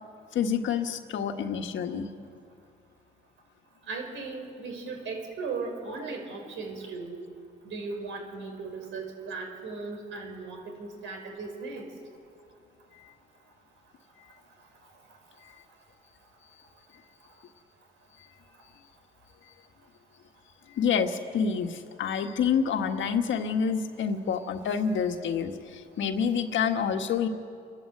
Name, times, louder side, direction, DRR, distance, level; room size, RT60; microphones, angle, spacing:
voice 1, 0.3-2.1 20.8-27.3, left 7 dB, 70° left, 6 dB, 1.6 m, -28 dB
voice 2, 3.9-7.2 7.6-11.9, right 4 dB, 75° right, 3 dB, 4.8 m, -37 dB
29.5 x 12.0 x 7.9 m, 2.3 s
cardioid pair, 90°, 20 cm